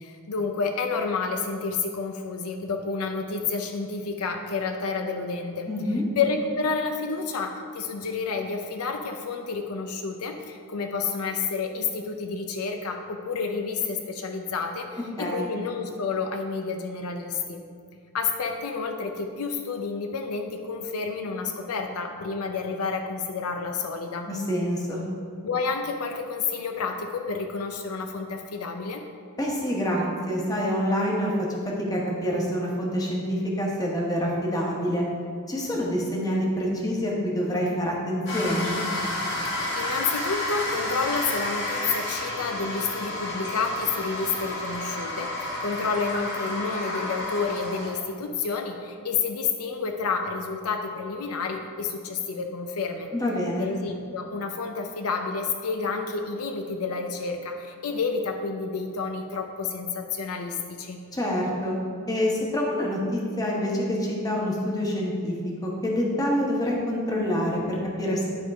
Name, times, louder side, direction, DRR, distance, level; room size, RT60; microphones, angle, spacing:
voice 1, 0.0-5.7 6.2-17.6 18.1-24.3 25.4-29.0 39.7-53.1 53.6-61.0, left 4 dB, 85° left, 5 dB, 0.6 m, -30 dB
voice 2, 5.7-6.0 15.2-15.5 24.3-25.0 29.4-35.0 35.5-38.8 53.1-53.7 61.1-61.7 62.1-65.4 65.6-68.2, equal, 15° left, -3 dB, 1.1 m, -26 dB
sound 1, 38.3-47.9, left 1 dB, 55° left, 1.9 m, -31 dB
10.5 x 3.7 x 4.8 m, 2.3 s
head